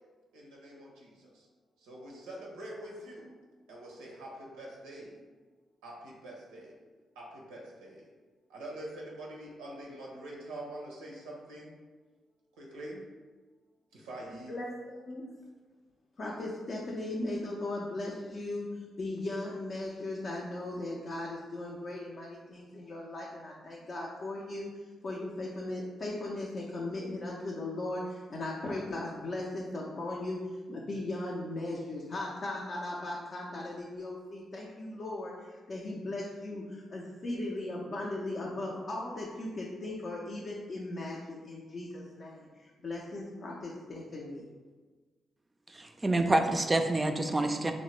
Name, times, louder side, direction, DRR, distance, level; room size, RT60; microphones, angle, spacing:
voice 1, 0.3-1.5 1.8-3.3 3.7-5.2 5.8-6.7 7.2-8.0 8.5-11.7 12.6-13.0 13.9-14.5, right 1 dB, 85° right, -3 dB, 0.5 m, -45 dB
voice 2, 14.5-15.3 16.2-24.7 25.0-44.5, left 2 dB, 55° left, -3 dB, 0.4 m, -38 dB
voice 3, 45.7-47.7, right 2 dB, 25° right, 6 dB, 0.3 m, -27 dB
3.0 x 2.0 x 3.0 m, 1.4 s
hypercardioid pair, 45°, 0 cm